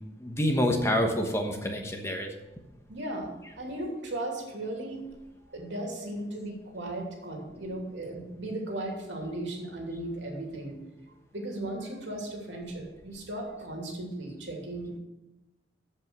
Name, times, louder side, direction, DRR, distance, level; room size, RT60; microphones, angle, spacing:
voice 1, 0.2-2.3 6.0-6.1, equal, 15° left, 3 dB, 1.2 m, -27 dB
voice 2, 2.9-3.3 3.6-5.0 5.4-10.7 11.3-15.0, right 1 dB, 80° right, 0 dB, 2.9 m, -36 dB
14.5 x 5.6 x 6.2 m, 1.0 s
head